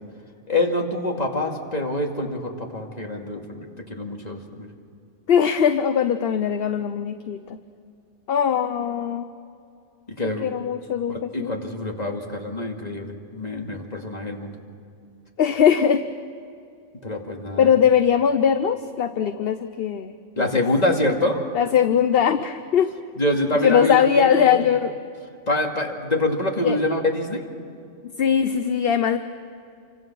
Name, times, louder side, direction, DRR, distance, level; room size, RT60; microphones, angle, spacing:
voice 1, 0.5-4.7 10.2-10.5 11.1-14.6 17.0-17.7 20.4-21.4 23.2-24.6 25.5-27.4, left 1 dB, 35° left, 1 dB, 2.5 m, -25 dB
voice 2, 5.3-7.4 8.3-9.3 10.4-11.6 15.4-16.0 17.6-20.6 21.5-22.9 23.6-24.9 26.6-26.8 28.2-29.2, left 8 dB, 55° left, 10 dB, 0.9 m, -20 dB
28.5 x 25.5 x 6.2 m, 2.5 s
omnidirectional pair, 1.3 m